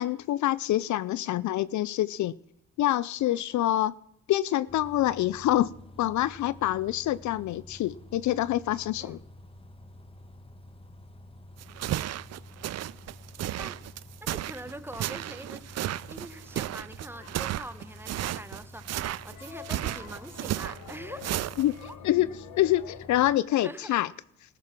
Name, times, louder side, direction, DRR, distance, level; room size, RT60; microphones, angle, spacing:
voice 1, 0.0-2.3 2.8-3.9 4.3-9.2 21.6-21.8 22.0-22.3 22.6-24.1, left 14 dB, 70° left, 19 dB, 0.6 m, -26 dB
Bus, 4.7-23.4, left 1 dB, 20° left, 1.4 m, -50 dB
sound 1, 11.6-21.9, right 13 dB, 60° right, 0.6 m, -34 dB
voice 2, 14.2-21.3 21.8-22.0 23.6-24.0, right 1 dB, 5° right, 12 dB, 1.3 m, -44 dB
sound 2, 17.1-18.5 19.1-23.3, left 11 dB, 90° left, 1.2 m, -49 dB
16.5 x 14.0 x 6.0 m, 0.74 s
cardioid pair, 90°, 30 cm